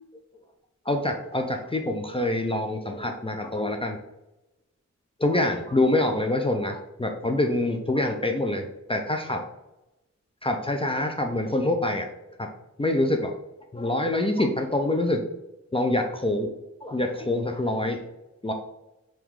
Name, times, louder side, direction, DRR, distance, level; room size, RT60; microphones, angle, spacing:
voice 1, 0.9-4.0 5.2-9.4 10.4-12.1 12.4-12.5 12.8-13.3 13.7-15.2 15.7-16.5 16.8-18.0 18.4-18.5, left 1 dB, 20° left, 3 dB, 0.5 m, -25 dB
3.6 x 3.0 x 4.7 m, 0.92 s
wide cardioid pair, 70°, 29 cm